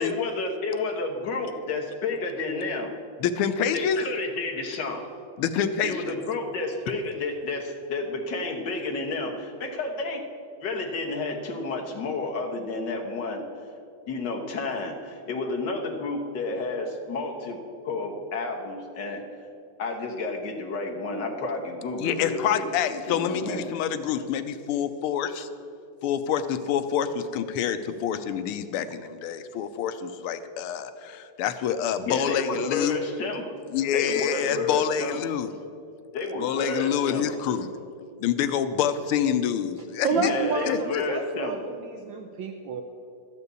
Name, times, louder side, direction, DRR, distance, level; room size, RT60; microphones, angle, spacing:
voice 1, 0.0-2.9 3.7-5.1 5.8-10.2 10.6-13.5 14.1-17.6 17.8-19.2 19.8-22.7 23.1-23.7 32.0-33.6 33.9-35.2 36.1-37.3 40.1-41.6, left 3 dB, 55° left, 2 dB, 1.7 m, -31 dB
voice 2, 3.2-4.0 5.4-6.1 22.0-25.5 26.0-33.0 33.7-35.5 36.4-37.7 38.2-40.3 40.7-41.0, left 8 dB, 85° left, 10 dB, 1.5 m, -27 dB
voice 3, 40.0-42.8, right 5 dB, 70° right, 5 dB, 1.3 m, -30 dB
12.5 x 5.4 x 8.3 m, 2.5 s
omnidirectional pair, 2.4 m